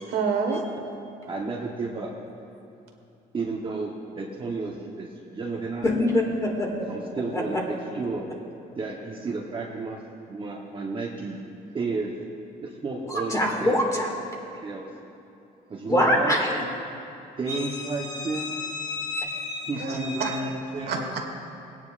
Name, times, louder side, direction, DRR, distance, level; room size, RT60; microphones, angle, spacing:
voice 1, 0.1-0.6 19.8-20.3 20.9-21.2, right 5 dB, 70° right, 2 dB, 1.5 m, -27 dB
voice 2, 1.3-2.1 3.3-6.0 6.9-8.3 8.8-10.0 10.3-11.4 11.7-12.1 12.6-13.8 14.5-14.9 15.7-16.4 17.4-18.5 19.6-21.1, right 3 dB, 30° right, -3 dB, 1.0 m, -32 dB
voice 3, 5.8-6.9 7.3-7.6 13.1-14.1 15.9-16.6 17.5-17.6 17.9-19.7 20.1-20.4, left 1 dB, 20° left, -1 dB, 2.0 m, -25 dB
19.0 x 9.5 x 2.5 m, 2.7 s
cardioid pair, 110°, 17 cm